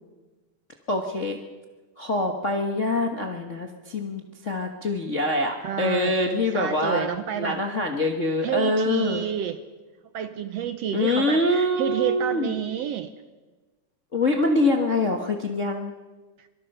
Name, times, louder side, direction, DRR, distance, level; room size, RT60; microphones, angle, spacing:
voice 1, 0.9-1.4 2.0-7.1 7.4-9.2 10.9-12.5 14.1-15.9, left 2 dB, 45° left, 2 dB, 1.0 m, -25 dB
voice 2, 5.6-7.6 8.4-9.6 10.1-13.1 16.4-16.5, right 9 dB, 70° right, 10 dB, 1.7 m, -29 dB
25.0 x 24.0 x 5.5 m, 1.3 s
omnidirectional pair, 3.6 m